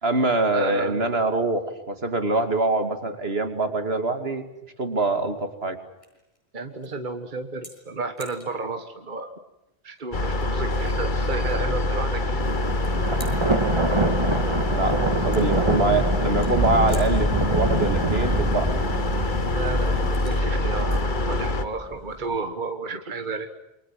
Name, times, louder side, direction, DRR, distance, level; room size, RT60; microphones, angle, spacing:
voice 1, 0.0-4.4 4.8-5.8 14.7-14.9 15.2-18.7, right 2 dB, 75° right, 7 dB, 2.8 m, -24 dB
voice 2, 0.5-1.0 6.5-9.3 9.8-12.5 14.9-15.5 19.5-23.5, right 3 dB, 50° right, 6 dB, 1.7 m, -32 dB
sound 1, 3.7-22.5, equal, 30° left, 7.8 m, -51 dB
sound 2, 10.1-21.6, left 2 dB, 50° left, 1.6 m, -25 dB
Thunder, 12.4-22.2, right 2 dB, 25° right, 1.7 m, -27 dB
28.5 x 24.0 x 7.6 m, 0.92 s
omnidirectional pair, 1.1 m